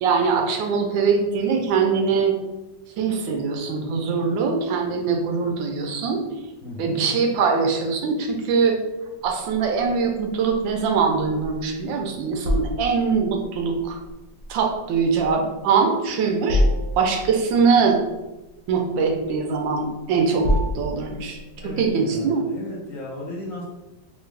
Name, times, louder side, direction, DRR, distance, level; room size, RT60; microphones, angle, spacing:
voice 1, 0.0-2.3 3.0-6.2 6.8-8.8 9.2-14.0 14.5-16.6 17.0-18.0 18.7-20.5 20.7-21.4 21.8-22.4, right 5 dB, 85° right, 3 dB, 1.3 m, -22 dB
voice 2, 6.6-7.0 21.6-23.6, left 2 dB, 55° left, -5 dB, 1.0 m, -35 dB
sound 1, 9.2-21.9, left 1 dB, 60° right, 0.9 m, -29 dB
3.3 x 2.6 x 3.2 m, 1.0 s
omnidirectional pair, 2.0 m